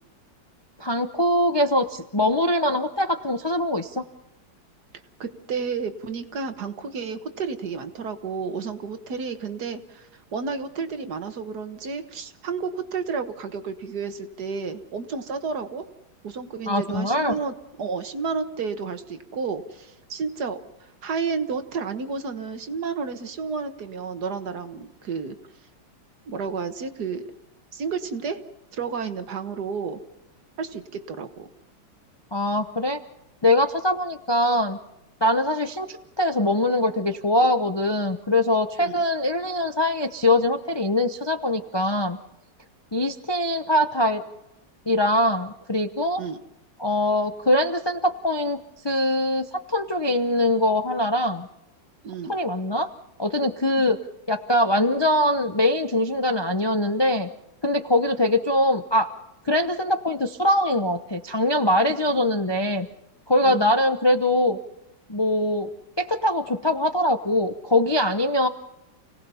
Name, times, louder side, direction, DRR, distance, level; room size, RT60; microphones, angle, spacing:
voice 1, 0.8-4.1 16.7-17.4 32.3-33.0 33.4-34.8 35.2-42.2 42.9-44.2 44.9-46.2 46.8-48.6 48.8-51.5 52.3-52.9 53.2-54.0 54.3-57.3 57.6-59.1 59.5-62.9 63.3-64.6 65.1-65.7 66.0-68.5, left 1 dB, 45° left, 7 dB, 0.3 m, -22 dB
voice 2, 5.2-15.9 16.2-25.4 26.3-27.3 27.7-28.4 28.7-30.0 30.6-31.5 38.8-38.9 46.2-46.4 52.0-52.3 63.4-63.7, right 5 dB, 60° right, 8 dB, 1.8 m, -31 dB
29.0 x 18.0 x 5.6 m, 0.87 s
omnidirectional pair, 2.0 m